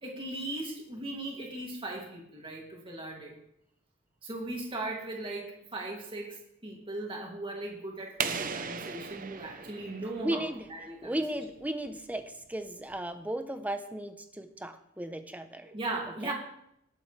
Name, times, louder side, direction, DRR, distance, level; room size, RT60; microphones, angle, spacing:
voice 1, 0.0-3.4 4.2-11.2 15.6-16.3, right 2 dB, 25° right, -2 dB, 2.4 m, -38 dB
sound 1, 8.2-10.8, right 6 dB, 40° right, 0.7 m, -37 dB
voice 2, 10.2-10.7 11.0-15.7 16.2-16.3, right 1 dB, 5° right, 8 dB, 0.7 m, -35 dB
19.0 x 7.7 x 3.3 m, 0.76 s
head